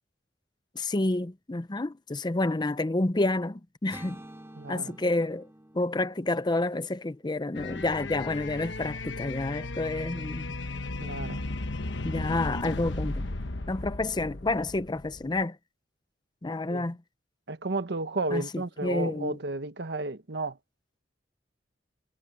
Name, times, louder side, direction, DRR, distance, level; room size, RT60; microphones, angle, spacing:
voice 1, 0.8-4.2 4.7-5.5 5.7-10.5 12.0-13.2 13.7-15.6 16.4-17.0 18.3-19.4, left 2 dB, 25° left, 0.6 m, -29 dB
sound 1, 3.9-7.9, right 1 dB, 15° right, 1.7 m, -50 dB
voice 2, 4.6-5.0 11.0-11.5 16.6-16.9 17.5-20.6, right 2 dB, 65° right, 1.2 m, -33 dB
sound 2, 7.5-15.4, left 2 dB, 85° left, 1.2 m, -35 dB
head